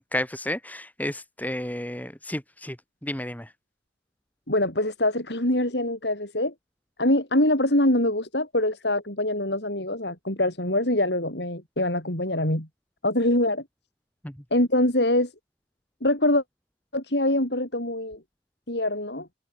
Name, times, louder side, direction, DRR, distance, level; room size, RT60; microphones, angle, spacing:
voice 1, 0.0-2.8 3.0-3.5 14.2-14.3, left 1 dB, 10° left, 2.7 m, -32 dB
voice 2, 4.5-6.5 7.0-12.7 13.0-13.6 14.5-15.3 16.0-16.4 16.9-18.2 18.7-19.3, left 1 dB, 70° left, 7.0 m, -24 dB
head